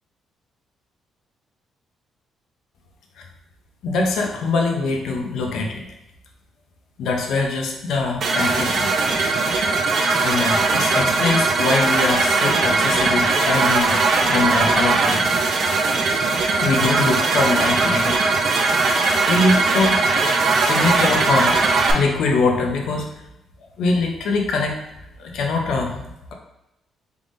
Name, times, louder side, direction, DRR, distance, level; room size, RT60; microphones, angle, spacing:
voice 1, 3.8-5.8 7.0-8.9 10.2-15.4 16.6-18.2 19.3-20.0 20.6-21.6 21.9-23.1 23.8-24.7 25.2-26.3, left 3 dB, 80° left, 2 dB, 0.6 m, -23 dB
sound 1, 8.2-21.9, right 3 dB, 55° right, 0.5 m, -19 dB
3.5 x 3.4 x 2.6 m, 0.89 s
cardioid pair, 105°, 0 cm